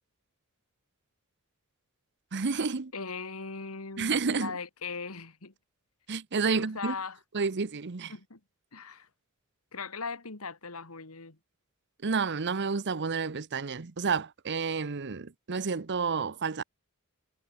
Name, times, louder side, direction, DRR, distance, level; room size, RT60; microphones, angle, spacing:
voice 1, 2.3-2.9 4.0-4.5 6.1-6.9 7.3-8.1 12.0-16.6, right 5 dB, 55° right, 0.8 m, -30 dB
voice 2, 2.9-5.5 6.5-7.2 8.1-8.4 8.7-9.1 9.7-11.4, left 4 dB, 80° left, 2.5 m, -39 dB
head